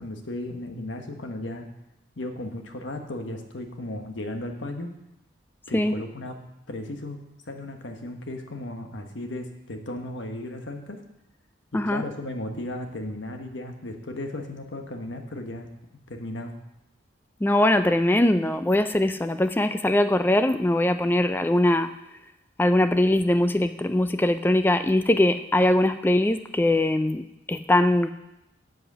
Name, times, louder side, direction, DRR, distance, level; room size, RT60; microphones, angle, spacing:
voice 1, 0.0-1.6 2.2-4.9 5.7-6.4 6.7-7.2 7.5-11.0 11.7-15.7 16.1-16.5, left 1 dB, 75° left, 5 dB, 1.2 m, -35 dB
voice 2, 17.4-21.9 22.6-28.1, left 1 dB, 10° left, 10 dB, 0.3 m, -21 dB
7.9 x 7.8 x 6.1 m, 0.88 s
head